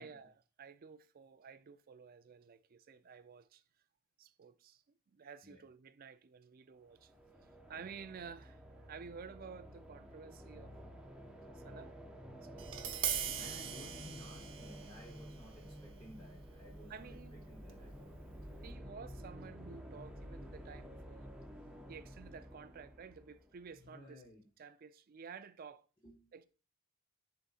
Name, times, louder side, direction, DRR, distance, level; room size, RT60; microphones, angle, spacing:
voice 1, 0.0-3.6 4.2-4.8 5.1-7.1 7.7-10.7 11.5-12.0 12.3-13.1 16.9-17.5 18.6-21.4 21.9-24.2 24.6-25.9 26.3-26.5, right 6 dB, 40° right, 0.4 m, -52 dB
sound 1, 6.8-23.8, equal, 5° right, 0.6 m, -52 dB
Tap, 12.6-18.7, right 9 dB, 55° right, 0.8 m, -43 dB
voice 2, 13.3-18.2 23.7-24.4 26.0-26.3, left 1 dB, 20° left, 1.0 m, -56 dB
9.9 x 4.1 x 2.4 m
head